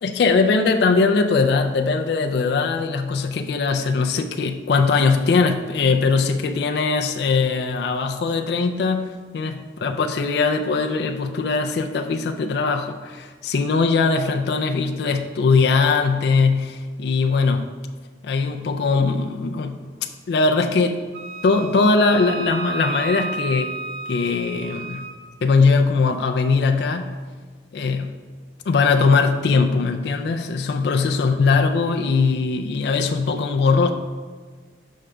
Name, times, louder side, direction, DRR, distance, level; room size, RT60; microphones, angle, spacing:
voice 1, 0.0-17.7 18.2-19.8 20.3-21.0 21.4-23.7 24.1-25.1 25.4-27.1 27.7-28.2 28.7-33.9, left 4 dB, 65° left, 4 dB, 0.3 m, -20 dB
Wind instrument woodwind instrument, 21.1-25.2, right 3 dB, 55° right, 0.5 m, -32 dB
6.4 x 4.8 x 3.3 m, 1.5 s
head